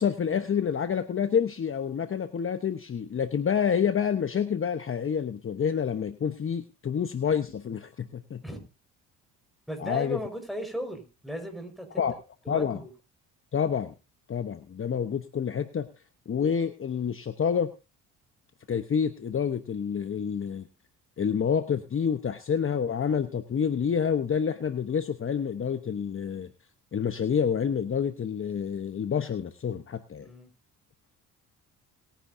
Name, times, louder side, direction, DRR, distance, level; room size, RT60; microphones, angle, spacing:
voice 1, 0.0-8.4 9.8-10.2 12.0-12.1 12.5-12.8 13.5-13.9 14.3-15.9 16.3-17.7 18.7-20.7 21.2-26.5 26.9-30.3, left 7 dB, 35° left, 9 dB, 1.0 m, -28 dB
voice 2, 9.7-12.1 12.4-12.9 30.2-30.5, equal, ahead, 4 dB, 5.0 m, -37 dB
20.5 x 10.5 x 2.7 m, 0.30 s
supercardioid pair, 75°, 37 cm